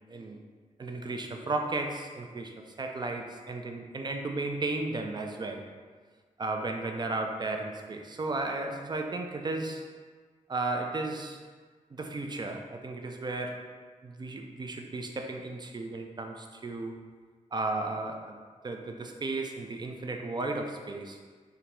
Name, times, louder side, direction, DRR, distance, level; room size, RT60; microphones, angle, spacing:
voice 1, 0.1-0.4 0.8-5.7 6.4-9.9 10.5-11.4 11.9-13.6 14.0-17.0 17.5-18.4 18.6-21.2, right 2 dB, 30° right, 4 dB, 0.4 m, -34 dB
3.6 x 2.2 x 2.9 m, 1.5 s
cardioid pair, 55°, 14 cm